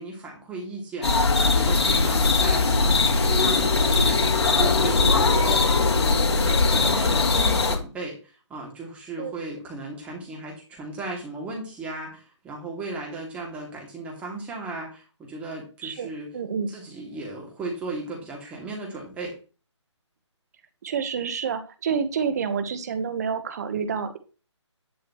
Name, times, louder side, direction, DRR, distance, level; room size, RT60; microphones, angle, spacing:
voice 1, 0.0-5.7 5.9-8.2 8.5-16.3 16.7-19.3, right 2 dB, 10° right, -1 dB, 2.6 m, -36 dB
sound 1, 1.0-7.8, left 3 dB, 60° left, 1.8 m, -20 dB
voice 2, 15.8-16.7 20.8-24.2, right 6 dB, 35° right, 10 dB, 1.2 m, -28 dB
11.0 x 8.5 x 3.1 m, 0.35 s
hypercardioid pair, 160°, 16 cm